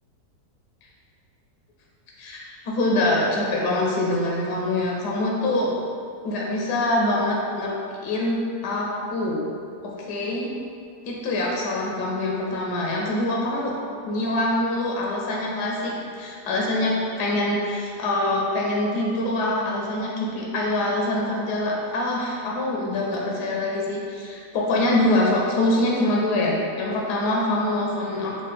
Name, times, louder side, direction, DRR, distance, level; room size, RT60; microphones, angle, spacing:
voice 1, 2.2-5.8 6.2-9.5 10.1-10.5 11.0-13.7 14.0-28.4, left 1 dB, 85° left, -3 dB, 1.2 m, -24 dB
3.6 x 2.3 x 4.1 m, 2.3 s
omnidirectional pair, 1.7 m